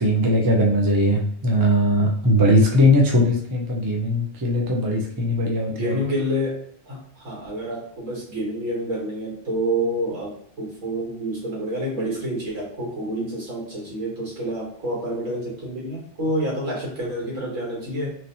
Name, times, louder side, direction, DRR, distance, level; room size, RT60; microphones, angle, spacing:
voice 1, 0.0-6.0, equal, 25° right, 0 dB, 0.4 m, -19 dB
voice 2, 5.7-18.1, equal, 75° right, -4 dB, 1.8 m, -28 dB
3.1 x 2.8 x 2.7 m, 0.64 s
omnidirectional pair, 1.3 m